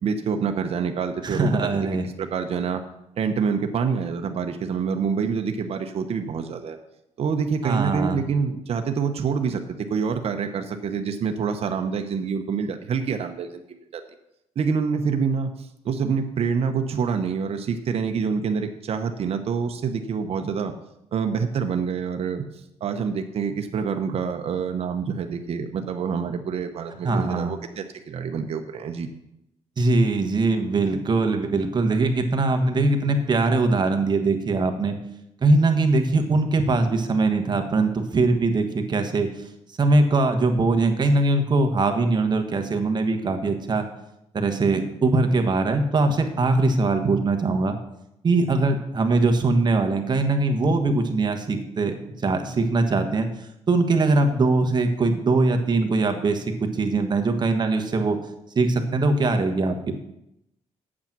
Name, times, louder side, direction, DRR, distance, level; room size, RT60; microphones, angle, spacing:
voice 1, 0.0-1.6 2.2-2.8 3.2-6.8 7.2-9.6 9.9-14.0 14.6-15.5 15.8-20.7 21.1-22.4 22.8-29.1, right 6 dB, 55° right, 6 dB, 0.9 m, -26 dB
voice 2, 1.2-2.0 7.6-8.2 27.0-27.5 29.8-35.0 35.4-39.3 39.8-43.9 44.3-47.8 48.2-51.9 52.2-53.3 53.7-58.2 58.5-60.0, right 3 dB, 35° right, 6 dB, 1.3 m, -21 dB
8.6 x 7.4 x 6.0 m, 0.84 s
cardioid pair, 100°, 12 cm